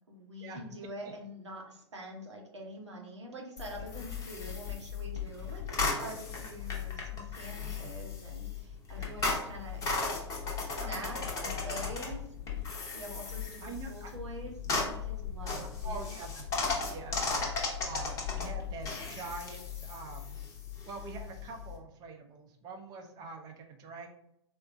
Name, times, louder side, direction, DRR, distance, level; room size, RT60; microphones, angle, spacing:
voice 1, 0.1-9.8 10.6-12.2 12.6-12.7 12.9-16.1, right 1 dB, 80° right, 0 dB, 0.9 m, -45 dB
sound 1, 3.6-21.8, left 4 dB, 20° left, 0.8 m, -36 dB
voice 2, 5.8-6.2 7.5-7.9 9.0-9.1 10.8-12.0 13.6-14.1 14.6-15.0 15.4-16.5 16.8-17.3 17.8-20.4 20.9-24.1, right 4 dB, 25° right, 3 dB, 0.6 m, -45 dB
3.6 x 2.1 x 2.6 m, 0.76 s
figure-of-eight pair, 105°, 15 cm